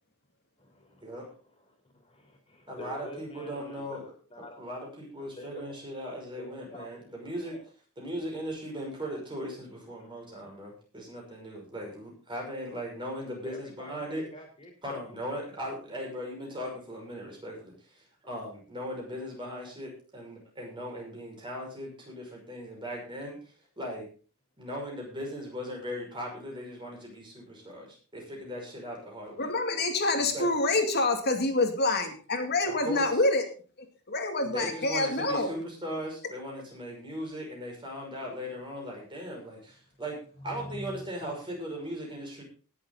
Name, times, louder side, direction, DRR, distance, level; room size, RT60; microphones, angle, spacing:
voice 1, 0.6-1.3 1.6-4.0 4.3-4.7 5.4-5.8 6.0-7.0 7.4-7.6 10.0-10.1 13.4-15.5 40.4-41.0, left 1 dB, 25° left, 3 dB, 3.9 m, -47 dB
voice 2, 2.7-4.0 4.4-7.6 8.0-14.2 14.8-23.4 23.8-24.1 24.6-29.5 30.2-30.7 32.7-33.2 34.4-40.2 40.4-42.4, equal, 20° right, -1 dB, 5.8 m, -38 dB
voice 3, 29.4-33.4 34.1-35.5, left 2 dB, 45° left, 5 dB, 2.4 m, -26 dB
19.5 x 7.8 x 4.0 m, 0.38 s
head